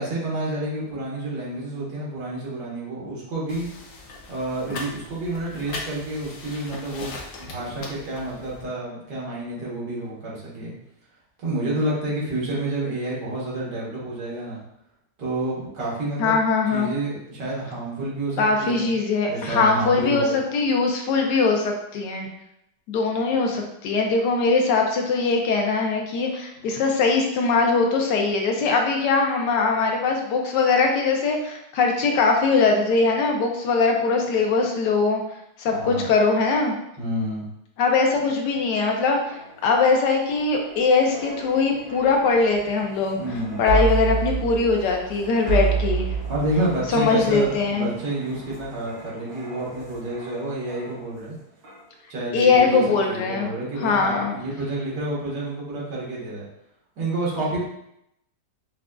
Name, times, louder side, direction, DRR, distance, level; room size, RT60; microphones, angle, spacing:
voice 1, 0.0-3.7 4.3-10.7 11.4-14.6 15.2-16.4 16.7-18.9 19.3-20.3 23.3-23.5 26.6-26.8 29.9-30.0 35.7-36.0 37.0-37.5 43.1-43.6 46.2-51.4 52.1-56.5 57.0-57.6, right 1 dB, 85° right, -6 dB, 1.9 m, -29 dB
sound 1, 3.5-8.7, left 3 dB, 65° left, 0.9 m, -39 dB
voice 2, 16.2-16.9 18.4-22.3 22.9-35.2 35.6-36.7 37.8-43.2 43.6-46.1 46.9-47.9 52.3-53.5 53.8-54.4, left 4 dB, 90° left, 2 dB, 1.3 m, -21 dB
sound 2, 39.0-51.3 51.6-51.9, right 5 dB, 45° right, 1.2 m, -31 dB
6.0 x 2.2 x 2.4 m, 0.80 s
omnidirectional pair, 1.8 m